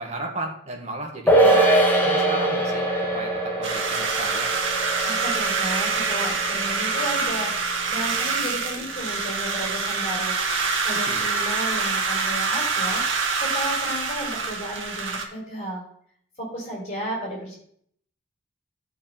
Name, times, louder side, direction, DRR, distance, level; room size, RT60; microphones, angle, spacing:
voice 1, 0.0-1.7 2.0-2.9 3.1-3.3 3.6-4.5 11.1-11.3, right 2 dB, 35° right, 1 dB, 1.8 m, -34 dB
sound 1, 1.3-7.9 8.2-8.3, right 1 dB, 10° left, 1.4 m, -23 dB
sound 2, 3.6-15.2, right 4 dB, 80° right, 1.5 m, -26 dB
voice 2, 5.0-10.4 10.8-15.8 16.4-17.6, equal, 35° left, -2 dB, 4.5 m, -33 dB
12.0 x 4.8 x 5.9 m, 0.65 s
head